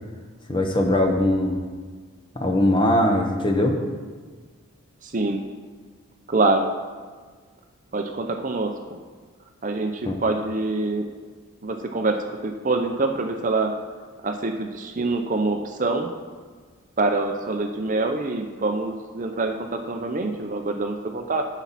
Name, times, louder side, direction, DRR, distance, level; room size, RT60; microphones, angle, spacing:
voice 1, 0.5-1.5 2.3-3.8 10.1-10.2, left 1 dB, 20° left, 2 dB, 0.9 m, -20 dB
voice 2, 5.0-5.4 6.3-6.7 7.9-8.7 9.6-11.1 11.6-13.7 14.2-16.1 17.0-21.5, right 3 dB, 35° right, 5 dB, 0.5 m, -25 dB
10.0 x 7.1 x 4.1 m, 1.5 s
head